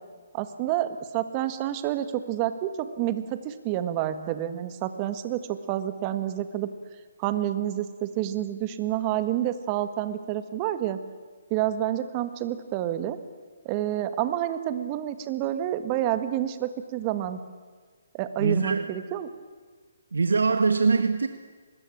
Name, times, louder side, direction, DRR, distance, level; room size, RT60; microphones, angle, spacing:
voice 1, 0.3-6.7 7.2-11.0 11.5-13.2 13.7-17.4 18.1-19.3, right 12 dB, 25° right, 11 dB, 1.7 m, -29 dB
voice 2, 18.4-18.9 20.1-21.3, right 4 dB, 90° right, 9 dB, 1.5 m, -23 dB
24.5 x 21.0 x 8.6 m, 1.5 s
hypercardioid pair, 155°, 0 cm